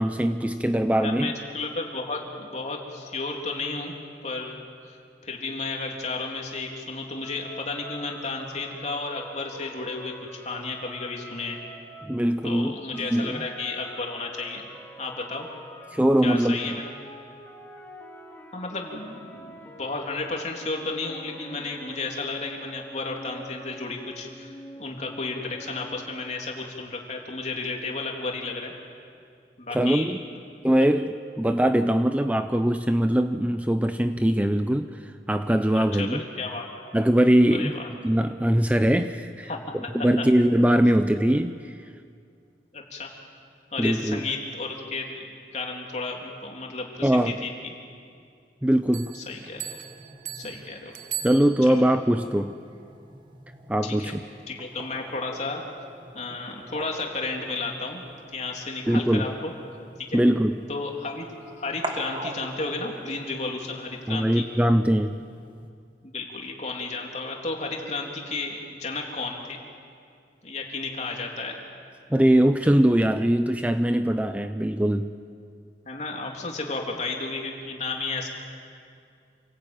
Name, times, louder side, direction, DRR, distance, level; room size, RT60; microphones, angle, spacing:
voice 1, 0.0-1.3 12.0-12.7 13.1-13.4 15.9-16.8 29.7-30.2 30.6-36.2 36.9-39.5 39.9-41.8 43.8-44.3 47.0-47.4 48.6-49.1 51.2-52.5 53.7-54.2 58.9-59.2 60.1-60.6 64.1-65.2 72.1-75.2, right 1 dB, 10° right, 8 dB, 0.5 m, -22 dB
voice 2, 1.0-3.9 4.2-4.6 4.9-5.0 5.2-10.1 10.4-11.6 12.4-14.6 15.0-15.5 16.2-16.9 18.5-24.5 24.8-28.7 29.6-30.1 35.7-36.7 37.5-37.8 39.5-39.9 42.7-43.1 43.7-47.6 49.1-49.8 50.3-50.9 51.6-51.8 53.8-54.1 54.5-55.6 56.1-58.0 58.3-59.5 60.0-60.2 60.7-61.3 61.5-64.4 66.0-69.6 70.4-71.5 75.8-78.3, left 3 dB, 40° left, 0 dB, 3.3 m, -33 dB
sound 1, 7.2-12.5 12.9-26.6, equal, 10° left, 2.4 m, -46 dB
sound 2, 48.7-65.7, right 1 dB, 30° right, 1.9 m, -44 dB
sound 3, 48.9-52.0, right 10 dB, 45° right, 1.0 m, -38 dB
28.0 x 18.0 x 9.1 m, 2.3 s
head